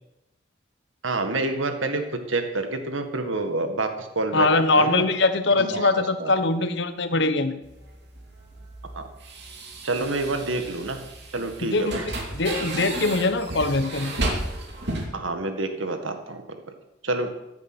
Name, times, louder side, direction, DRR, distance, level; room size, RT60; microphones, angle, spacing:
voice 1, 1.0-2.0 2.3-5.0 5.6-6.3 9.0-9.1 9.8-11.0 11.3-12.1 15.1-16.4 17.0-17.3, right 2 dB, 80° right, 7 dB, 1.8 m, -28 dB
voice 2, 4.3-7.6 11.6-12.0 12.3-14.1, left 2 dB, 60° left, 11 dB, 1.1 m, -22 dB
sound 1, 7.6-15.1, right 1 dB, 55° right, 2.8 m, -33 dB
15.0 x 11.0 x 6.2 m, 0.95 s
head